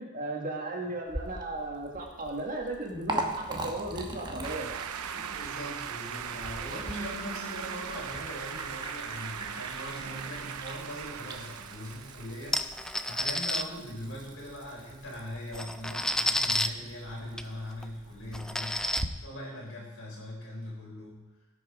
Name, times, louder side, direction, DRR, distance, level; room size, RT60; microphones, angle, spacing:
voice 1, 0.0-4.7, right 2 dB, 40° right, 0 dB, 1.8 m, -36 dB
Liquid, 1.1-19.1, right 1 dB, 20° right, 1.0 m, -42 dB
sound 1, 4.4-12.7, right 9 dB, 80° right, 0.5 m, -39 dB
voice 2, 5.0-21.2, equal, 65° left, -3 dB, 4.7 m, -41 dB
sound 2, 12.5-13.6 14.9-15.0 15.4-16.7 17.4-17.5 17.8-17.9 18.3-19.0, left 1 dB, 5° left, 0.3 m, -30 dB
17.5 x 6.3 x 4.9 m, 1.1 s
head